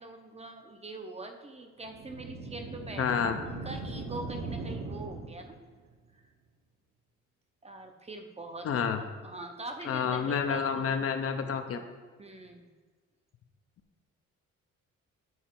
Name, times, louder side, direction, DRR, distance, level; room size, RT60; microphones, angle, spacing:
voice 1, 0.0-3.1 3.5-5.6 6.1-6.2 7.6-8.8 9.2-10.8 12.2-12.7, right 2 dB, 20° right, 5 dB, 0.6 m, -43 dB
sound 1, 1.9-5.7, right 3 dB, 55° right, 0.9 m, -39 dB
voice 2, 3.0-3.4 8.6-9.0 9.9-11.8, left 7 dB, 50° left, 6 dB, 0.6 m, -29 dB
7.1 x 3.7 x 4.4 m, 1.4 s
cardioid pair, 90°, 30 cm